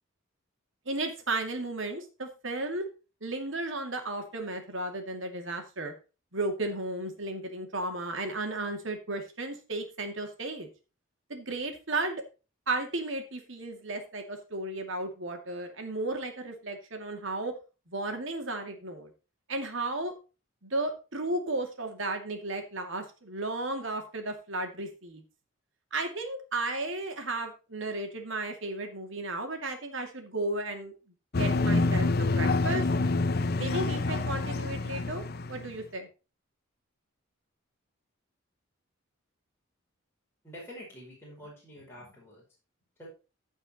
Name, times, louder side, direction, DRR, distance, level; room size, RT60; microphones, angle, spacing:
voice 1, 0.9-2.8 3.2-5.9 6.3-10.7 11.3-12.2 12.7-17.5 17.9-19.1 19.5-20.1 20.6-25.2 25.9-30.9 31.4-32.8 33.6-36.1, right 2 dB, 65° right, 4 dB, 2.5 m, -34 dB
sound 1, 31.3-35.8, left 3 dB, 50° left, 0.6 m, -27 dB
voice 2, 40.4-42.4 43.0-43.1, equal, 10° left, -5 dB, 5.0 m, -47 dB
15.0 x 5.4 x 4.3 m, 0.32 s
head